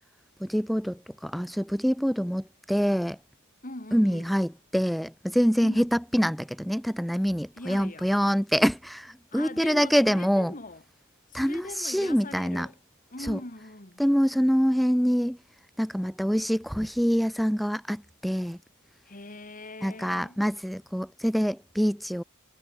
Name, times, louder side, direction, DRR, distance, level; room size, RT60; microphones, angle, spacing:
voice 1, 0.4-3.2 3.9-10.5 11.3-12.7 13.2-13.4 14.0-15.4 15.8-18.6 19.8-22.2, equal, ahead, 0.3 m, -25 dB
voice 2, 3.6-4.3 5.6-5.9 7.6-8.2 9.3-10.8 11.3-12.8 13.1-14.0 19.1-20.4, left 2 dB, 40° left, 3.5 m, -41 dB
head